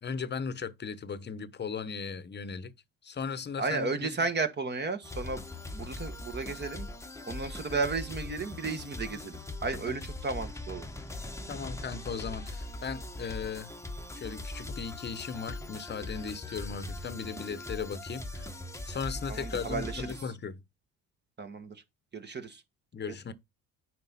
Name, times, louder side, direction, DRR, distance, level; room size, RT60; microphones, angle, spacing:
voice 1, 0.0-2.7 3.0-4.1 9.9-10.0 11.5-13.7 14.1-18.5 18.9-20.6 22.9-23.3, left 6 dB, 35° left, 1.0 m, -37 dB
voice 2, 3.6-5.4 5.7-6.9 7.3-10.9 19.3-20.3 21.4-21.8 22.1-22.6, right 4 dB, 35° right, 1.6 m, -34 dB
sound 1, 5.0-20.2, left 2 dB, 10° left, 1.0 m, -41 dB
9.2 x 4.8 x 4.1 m
supercardioid pair, 80°, 31 cm